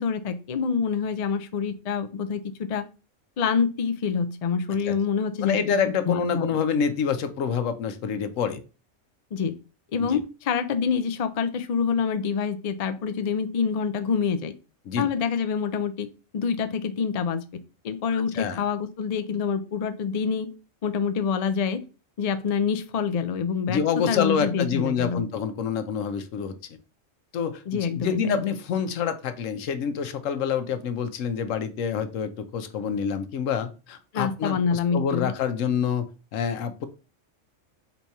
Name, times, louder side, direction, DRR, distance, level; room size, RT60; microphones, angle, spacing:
voice 1, 0.0-2.8 3.4-6.6 9.3-9.5 9.9-14.5 15.0-16.1 16.3-17.4 17.8-20.5 20.8-21.8 22.2-23.8 24.1-25.2 27.7-28.2 34.1-35.3, left 6 dB, 65° left, 10 dB, 0.3 m, -26 dB
voice 2, 5.4-8.6 10.0-10.2 14.9-15.1 18.1-18.6 23.7-26.5 27.3-36.1 36.3-36.9, left 7 dB, 85° left, 10 dB, 1.0 m, -27 dB
4.0 x 2.8 x 4.6 m, 0.33 s
omnidirectional pair, 1.3 m